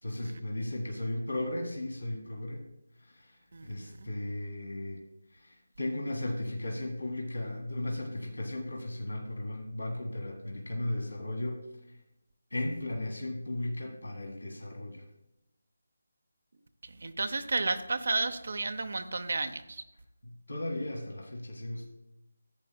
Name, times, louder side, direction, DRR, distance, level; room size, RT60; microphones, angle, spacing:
voice 1, 0.0-2.6 3.0-5.0 5.3-11.6 12.5-15.0 20.2-21.9, left 1 dB, 70° left, 3 dB, 1.7 m, -36 dB
voice 2, 3.5-3.9 17.0-19.8, right 3 dB, 55° right, 8 dB, 0.6 m, -32 dB
15.5 x 8.3 x 2.2 m, 0.93 s
figure-of-eight pair, 155°, 0 cm